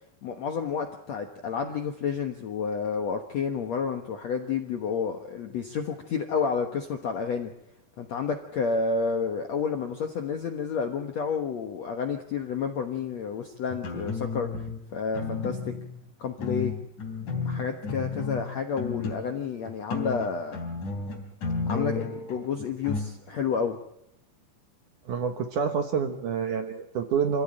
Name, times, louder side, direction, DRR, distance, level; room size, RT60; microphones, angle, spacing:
voice 1, 0.2-7.5 8.0-15.7 16.2-16.7 17.4-20.6 21.7-23.8, left 5 dB, 65° left, 5 dB, 1.7 m, -30 dB
sound 1, 13.7-14.8 15.2-16.0 16.4-19.4 19.7-23.1, left 4 dB, 45° left, 4.9 m, -32 dB
voice 2, 25.1-27.4, right 6 dB, 65° right, 7 dB, 2.2 m, -28 dB
27.0 x 15.5 x 8.9 m, 0.81 s
omnidirectional pair, 5.0 m